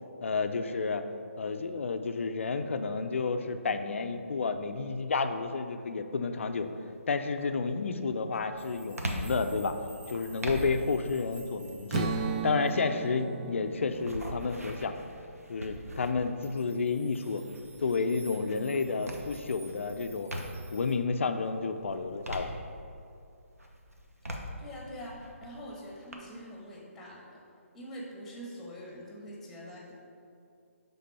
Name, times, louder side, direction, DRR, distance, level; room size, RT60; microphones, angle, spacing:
voice 1, 0.2-1.1 1.4-6.7 7.1-9.7 10.1-12.1 12.4-14.9 15.5-17.4 17.8-20.3 20.7-22.5, left 4 dB, 60° left, 7 dB, 0.5 m, -31 dB
sound 1, 6.4-6.8 7.3-20.8 21.3-23.1 23.6-26.1, equal, 85° right, 1.1 m, -42 dB
sound 2, 8.6-13.1 16.4-21.0, right 2 dB, 50° right, 1.6 m, -55 dB
Strum, 11.9-16.1, right 5 dB, 30° right, 0.4 m, -37 dB
voice 2, 24.2-27.4 27.7-29.9, equal, 5° left, -3 dB, 1.4 m, -44 dB
11.0 x 3.8 x 4.3 m, 2.5 s
figure-of-eight pair, 145°, 8 cm